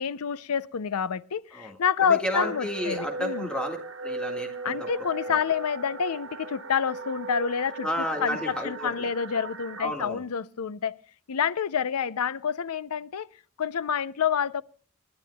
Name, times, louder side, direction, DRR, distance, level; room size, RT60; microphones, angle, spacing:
voice 1, 0.0-3.5 4.6-11.0 11.3-13.3 13.6-14.6, left 7 dB, 80° left, 0.5 m, -28 dB
voice 2, 1.5-5.1 7.8-9.1 9.8-10.2, left 1 dB, 5° left, 1.8 m, -32 dB
sound 1, 2.3-9.8, right 2 dB, 70° right, 3.3 m, -37 dB
29.0 x 10.5 x 2.3 m
head